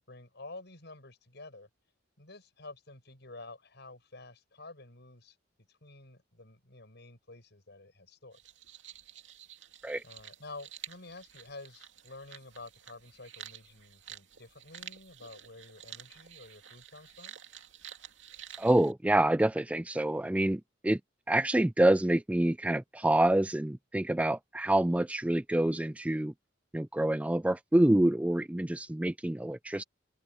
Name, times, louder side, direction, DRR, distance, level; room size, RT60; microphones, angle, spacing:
voice 1, 0.0-1.7 2.2-5.4 5.7-8.4 10.0-17.4, left 2 dB, 60° left, 6.8 m, -50 dB
sound 1, 8.3-18.9, right 10 dB, 70° right, 2.8 m, -50 dB
voice 2, 18.6-21.0 21.3-26.3 26.7-29.8, right 1 dB, 5° right, 0.3 m, -27 dB
head